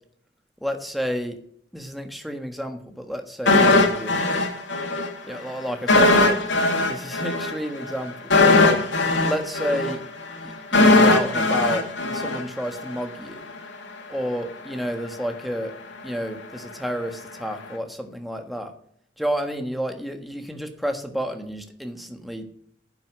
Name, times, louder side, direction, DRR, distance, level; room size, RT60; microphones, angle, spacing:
voice 1, 0.6-1.4 1.7-4.2 5.2-6.4 6.9-8.8 9.2-10.0 10.4-13.4 14.1-15.7 16.0-18.7 19.2-22.5, equal, ahead, 5 dB, 1.4 m, -30 dB
sound 1, 3.5-5.1 5.4-5.5 5.9-13.0 13.3-13.4, left 2 dB, 75° left, 2.5 m, -19 dB
11.5 x 9.5 x 6.3 m, 0.65 s
head